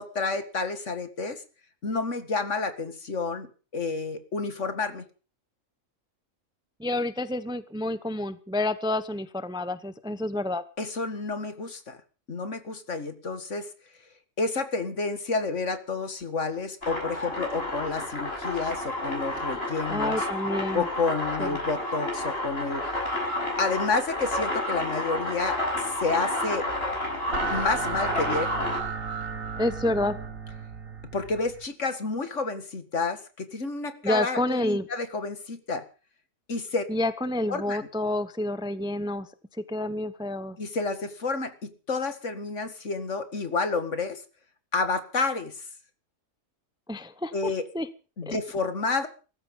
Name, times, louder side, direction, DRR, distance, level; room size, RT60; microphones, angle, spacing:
voice 1, 0.0-1.4 1.8-3.5 3.7-5.0 10.8-12.0 12.3-13.7 14.4-20.3 20.7-22.9 23.6-26.7 27.5-28.5 31.1-35.8 36.5-36.8 37.5-37.8 40.6-44.2 44.7-45.7 47.3-47.6 48.2-49.1, left 3 dB, 65° left, 9 dB, 2.3 m, -30 dB
voice 2, 6.8-10.6 19.9-20.9 21.4-21.6 29.6-30.2 34.0-34.9 36.9-39.3 39.7-40.6 46.9-47.9 48.2-48.4, left 1 dB, 5° right, 13 dB, 0.7 m, -29 dB
sound 1, 16.8-28.8, left 1 dB, 50° left, 7.6 m, -30 dB
sound 2, 26.6-31.7, right 5 dB, 90° right, 2.2 m, -34 dB
18.0 x 14.5 x 5.4 m, 0.37 s
omnidirectional pair, 1.4 m